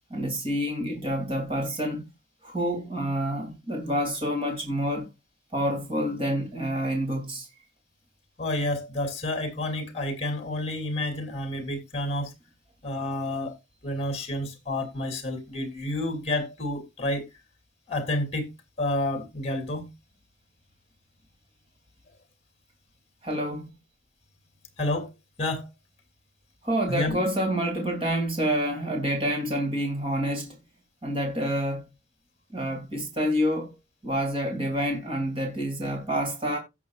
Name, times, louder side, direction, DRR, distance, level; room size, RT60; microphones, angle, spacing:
voice 1, 0.1-2.1 2.4-5.1 5.5-7.5 23.2-23.7 26.6-30.6 31.0-31.9 32.5-33.7 34.0-36.6, equal, 30° right, 2.7 m, -28 dB
voice 2, 8.4-12.3 12.8-13.6 13.8-17.3 17.9-18.5 18.8-19.9 24.8-25.1 25.4-25.7 26.9-27.2, left 1 dB, 35° left, 2.6 m, -29 dB
16.5 x 6.2 x 2.4 m
head